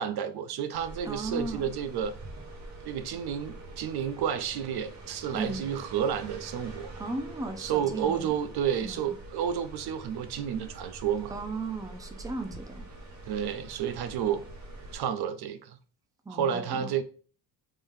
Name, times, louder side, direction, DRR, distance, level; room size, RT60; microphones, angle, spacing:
voice 1, 0.0-2.1 2.9-6.9 7.6-11.3 13.3-14.4 14.9-15.8 16.3-17.0, right 8 dB, 60° right, 0.5 m, -31 dB
sound 1, 0.7-15.0, right 2 dB, 40° right, 1.5 m, -45 dB
voice 2, 1.0-1.7 5.3-5.6 7.0-8.3 8.8-9.2 11.3-12.9 16.2-16.9, right 2 dB, 10° right, 0.6 m, -36 dB
3.6 x 3.3 x 2.7 m
cardioid pair, 95°, 44 cm